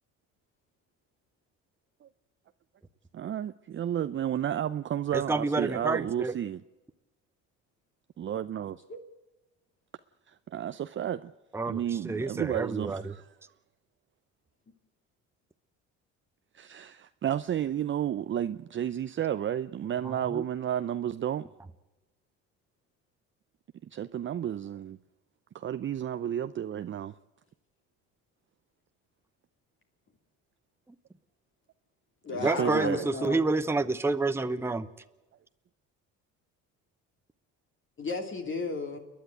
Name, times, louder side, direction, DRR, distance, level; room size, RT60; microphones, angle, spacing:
voice 1, 3.1-6.6 8.2-8.8 10.3-11.3 11.7-13.3 16.5-21.4 23.8-25.0 25.5-27.1 32.3-33.1, right 10 dB, 40° right, 11 dB, 0.6 m, -32 dB
voice 2, 5.1-6.3 11.5-13.1 20.0-20.4 32.4-34.9, right 3 dB, 10° right, 10 dB, 0.9 m, -29 dB
voice 3, 32.2-33.5 38.0-39.0, left 3 dB, 40° left, 4 dB, 2.6 m, -34 dB
29.0 x 10.5 x 9.2 m, 1.1 s
supercardioid pair, 80°, 32 cm